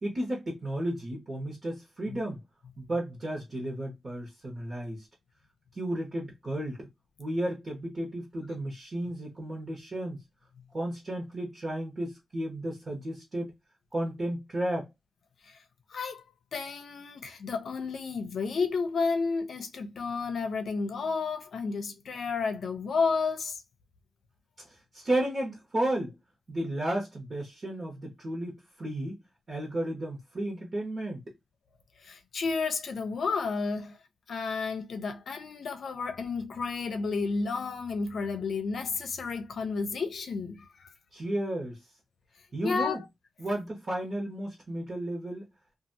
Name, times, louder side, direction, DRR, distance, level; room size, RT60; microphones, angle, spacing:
voice 1, 0.0-2.4 2.8-5.1 5.7-6.9 7.2-10.2 10.7-13.5 13.9-14.9 24.9-26.2 26.5-29.2 29.5-31.2 41.1-41.8 42.5-43.0 43.4-45.5, right 1 dB, 35° right, 1.2 m, -33 dB
voice 2, 15.9-16.2 16.5-23.6 32.0-34.0 34.3-40.9 42.6-43.0, left 4 dB, 60° left, 0.7 m, -31 dB
2.7 x 2.5 x 2.7 m
wide cardioid pair, 145°, 0 cm